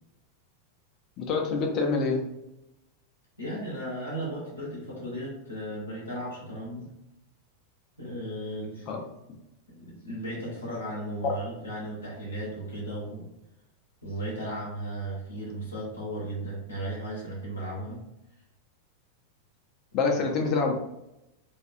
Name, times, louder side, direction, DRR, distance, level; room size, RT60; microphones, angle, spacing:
voice 1, 1.2-2.3 8.9-9.0 19.9-20.7, left 4 dB, 35° left, 2 dB, 0.5 m, -26 dB
voice 2, 3.4-6.9 8.0-8.9 9.7-13.3 14.0-18.0, right 1 dB, 80° left, -6 dB, 0.8 m, -35 dB
2.4 x 2.3 x 2.6 m, 0.88 s
figure-of-eight pair, 90°, 0 cm